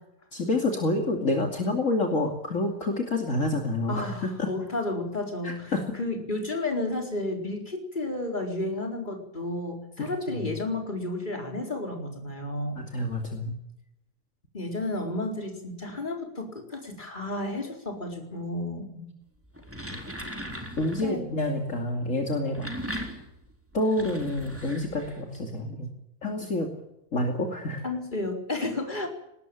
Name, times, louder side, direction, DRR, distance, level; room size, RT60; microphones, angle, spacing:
voice 1, 0.3-4.5 5.4-5.8 10.3-10.5 12.8-13.6 19.0-19.1 20.8-22.7 23.7-25.9 26.2-26.7 27.1-27.8, left 2 dB, 50° left, 2 dB, 3.0 m, -28 dB
voice 2, 3.9-5.7 6.0-12.8 14.5-18.9 21.0-21.2 27.8-29.1, left 2 dB, 30° left, 3 dB, 4.6 m, -32 dB
sound 1, 19.4-21.1 22.3-25.4, equal, 10° right, 3.9 m, -38 dB
20.5 x 19.0 x 9.0 m, 0.86 s
omnidirectional pair, 1.7 m